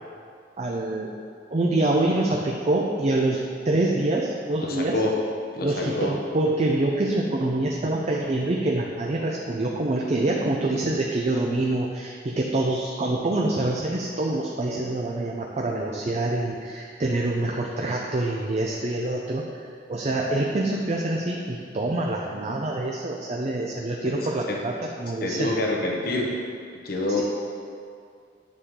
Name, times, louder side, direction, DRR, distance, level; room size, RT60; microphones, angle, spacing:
voice 1, 0.6-1.1 1.5-5.0 5.6-25.5 27.2-27.3, right 2 dB, 40° right, -1 dB, 0.6 m, -26 dB
voice 2, 4.6-5.1 5.5-6.1 24.0-24.6 25.2-26.3 26.8-27.2, left 1 dB, 60° left, -1 dB, 1.1 m, -27 dB
9.5 x 6.5 x 3.7 m, 2.3 s
head